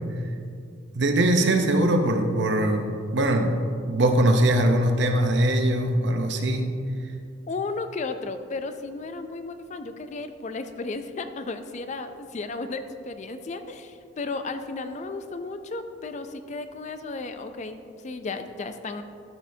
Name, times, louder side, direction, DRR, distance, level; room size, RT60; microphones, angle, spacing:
voice 1, 0.9-6.7, right 1 dB, 60° right, 5 dB, 0.7 m, -22 dB
voice 2, 7.5-19.0, left 3 dB, 35° left, 9 dB, 0.4 m, -34 dB
12.5 x 6.4 x 2.7 m, 2.4 s
head